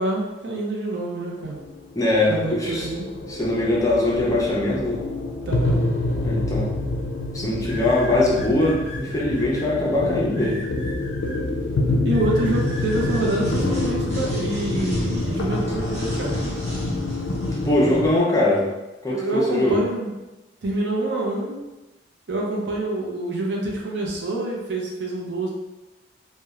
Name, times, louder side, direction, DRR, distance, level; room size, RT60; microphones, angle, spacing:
voice 1, 0.0-1.6 2.3-3.1 5.5-5.9 12.0-16.4 19.0-20.1 20.6-21.6 22.3-25.5, right 2 dB, 65° right, -2 dB, 0.6 m, -26 dB
sound 1, 1.4-18.2, left 2 dB, 80° left, 0.4 m, -27 dB
voice 2, 2.0-2.3 2.6-2.8 3.3-5.0 6.2-6.7 7.3-10.6 17.6-18.7 19.0-19.8, left 1 dB, 20° left, -4 dB, 0.5 m, -21 dB
sound 2, 7.6-9.6 10.3-11.4 12.1-13.2, left 1 dB, 85° right, 1.1 m, -39 dB
sound 3, 12.3-18.0, equal, 35° right, 1.0 m, -34 dB
2.9 x 2.1 x 2.3 m, 1.0 s
head